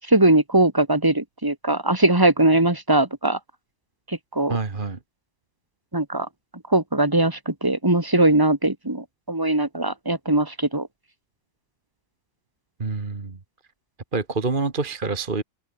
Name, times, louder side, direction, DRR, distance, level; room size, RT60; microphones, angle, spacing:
voice 1, 0.1-3.4 4.1-4.6 5.9-6.3 6.7-10.9, right 2 dB, 10° right, 3.5 m, -20 dB
voice 2, 4.5-5.0 12.8-13.4 14.1-15.4, right 4 dB, 30° right, 1.7 m, -26 dB
omnidirectional pair, 2.0 m